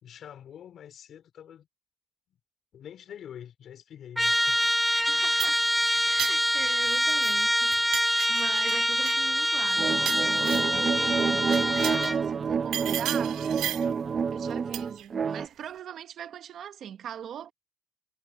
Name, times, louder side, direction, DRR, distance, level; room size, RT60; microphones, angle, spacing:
voice 1, 0.0-1.7 2.7-4.7, left 9 dB, 65° left, 4.6 m, -45 dB
Trumpet, 4.2-12.2, equal, 5° left, 0.4 m, -25 dB
voice 2, 4.9-5.7 6.0-11.6 12.2-13.4 14.3-17.5, right 9 dB, 70° right, 1.6 m, -41 dB
sound 1, 5.1-7.4 7.7-10.8 11.4-12.2 12.7-14.0 14.7-15.1, right 12 dB, 90° right, 2.3 m, -36 dB
sound 2, 9.8-15.5, right 6 dB, 45° right, 1.0 m, -28 dB
cardioid pair, 90°, 0 cm